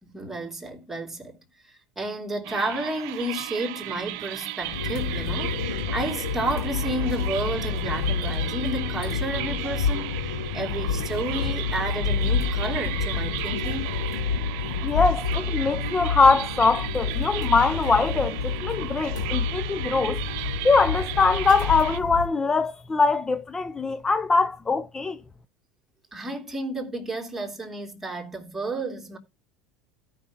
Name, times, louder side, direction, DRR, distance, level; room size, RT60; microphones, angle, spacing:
voice 1, 0.0-1.4 1.6-13.9 26.1-29.2, right 2 dB, 10° right, 3.3 m, -31 dB
sound 1, 2.4-22.0, right 16 dB, 65° right, 0.7 m, -36 dB
sound 2, 4.6-22.3, left 5 dB, 80° left, 1.8 m, -29 dB
voice 2, 14.8-20.2 20.6-25.2, left 4 dB, 20° left, 0.6 m, -22 dB
17.0 x 6.0 x 2.8 m
hypercardioid pair, 80°, 3 cm